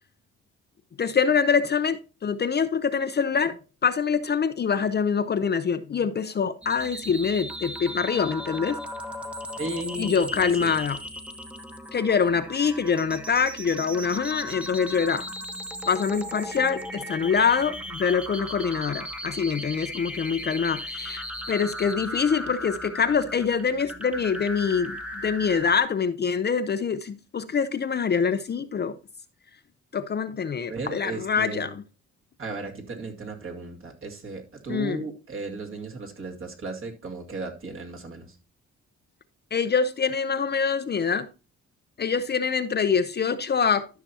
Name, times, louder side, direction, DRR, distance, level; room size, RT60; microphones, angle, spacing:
voice 1, 1.0-8.8 10.0-11.0 11.9-15.3 15.9-29.0 29.9-31.8 34.7-35.0 39.5-41.3 42.0-43.9, left 6 dB, 35° left, 0.6 m, -25 dB
sound 1, 6.6-25.8, equal, 5° right, 1.0 m, -37 dB
voice 2, 9.6-10.7 30.7-31.8 32.4-38.4, right 3 dB, 45° right, 2.1 m, -35 dB
12.5 x 5.9 x 2.8 m
cardioid pair, 90°, 30 cm